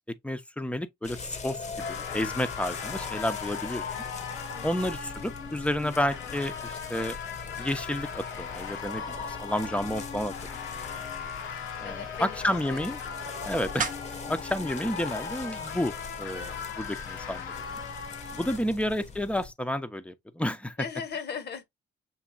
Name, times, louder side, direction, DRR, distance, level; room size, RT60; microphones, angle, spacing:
voice 1, 0.2-3.8 4.6-7.2 7.6-10.3 11.8-13.0 13.4-13.9 14.3-17.5 18.3-20.8, left 1 dB, 5° left, 0.7 m, -31 dB
sound 1, 1.0-19.5, left 5 dB, 35° left, 0.9 m, -41 dB
sound 2, 1.8-18.6, left 6 dB, 80° left, 1.1 m, -39 dB
sound 3, 10.8-16.0, right 6 dB, 40° right, 0.8 m, -42 dB
voice 2, 11.8-12.8 13.5-13.7 16.3-16.9 18.6-18.8 20.8-21.7, left 6 dB, 55° left, 1.2 m, -40 dB
7.2 x 2.7 x 2.4 m
cardioid pair, 90°, 20 cm